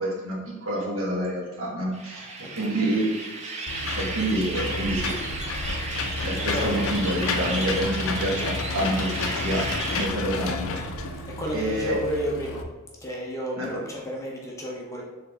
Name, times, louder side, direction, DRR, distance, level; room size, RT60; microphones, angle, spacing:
voice 1, 0.0-3.1 4.0-5.2 6.2-9.7 9.9-11.1 11.5-12.0 13.6-13.8, right 1 dB, 65° right, -4 dB, 1.1 m, -28 dB
sound 1, 1.9-10.1, right 3 dB, 30° right, 0.5 m, -34 dB
Engine / Mechanisms, 3.7-12.6, left 3 dB, 65° left, 0.4 m, -31 dB
voice 2, 11.3-12.6 13.0-15.0, equal, 15° left, -2 dB, 0.6 m, -31 dB
4.0 x 3.5 x 3.3 m, 1.2 s
head